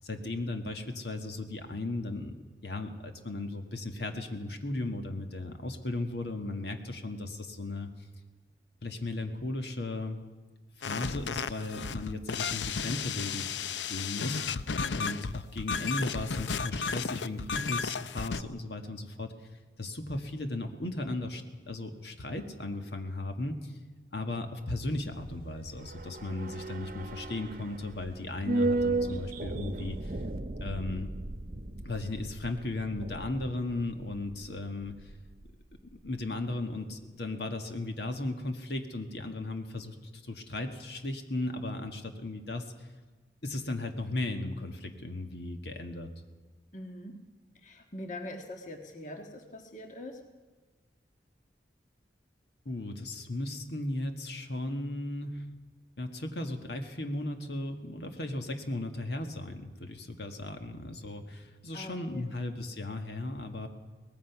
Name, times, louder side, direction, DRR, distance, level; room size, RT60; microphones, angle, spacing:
voice 1, 0.0-2.3 2.6-7.9 8.8-10.2 10.8-13.5 13.9-14.6 14.9-19.3 19.8-23.8 24.1-30.2 30.6-31.1 31.8-35.1 36.0-42.9 43.4-46.1 52.6-55.5 56.0-63.7, left 2 dB, 70° left, 5 dB, 1.7 m, -36 dB
sound 1, 10.8-18.4, left 5 dB, 85° left, 0.6 m, -34 dB
sound 2, 25.1-35.5 35.8-35.9, right 2 dB, 50° right, 0.9 m, -35 dB
voice 2, 46.7-47.2 47.6-50.2 61.7-62.2, left 1 dB, 45° left, 4 dB, 1.5 m, -43 dB
23.0 x 19.0 x 5.9 m, 1.3 s
head